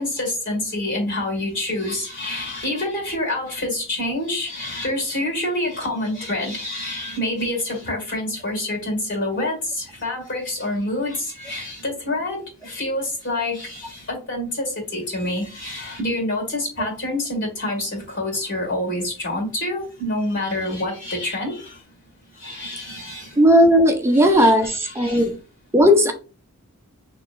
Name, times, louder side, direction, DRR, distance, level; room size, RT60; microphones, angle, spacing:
voice 1, 0.0-21.8 22.3-23.4 24.1-25.3, left 1 dB, 55° left, 1 dB, 2.1 m, -27 dB
voice 2, 23.4-25.3 25.7-26.1, equal, 10° right, 6 dB, 0.5 m, -15 dB
6.4 x 3.0 x 2.5 m, 0.35 s
head